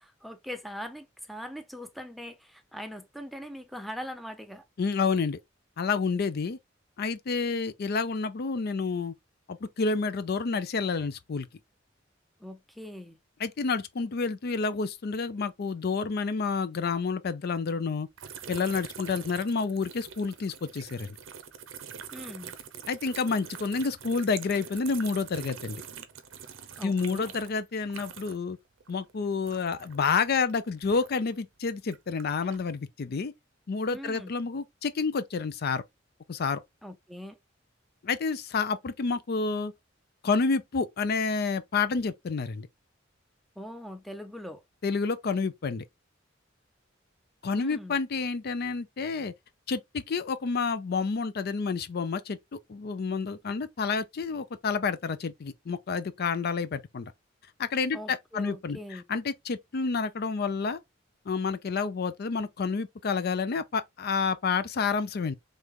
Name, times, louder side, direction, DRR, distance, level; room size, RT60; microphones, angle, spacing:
voice 1, 0.0-4.6 12.4-13.2 22.1-22.5 26.8-27.3 33.9-34.3 36.8-37.4 43.6-44.6 47.5-48.0 57.9-59.0, equal, ahead, 0.5 m, -41 dB
voice 2, 4.8-5.4 5.8-6.6 7.0-9.1 9.5-11.5 13.4-18.1 18.5-21.2 22.9-25.8 26.8-28.6 28.9-33.3 33.7-35.8 36.3-36.6 38.0-39.7 40.2-42.7 44.8-45.8 47.4-49.3 49.7-57.1 57.6-60.8 61.3-65.3, left 4 dB, 55° left, 0.5 m, -29 dB
sound 1, 18.2-28.6 28.8-31.3 31.8-32.7, right 7 dB, 85° right, 0.6 m, -45 dB
3.3 x 3.2 x 3.6 m
head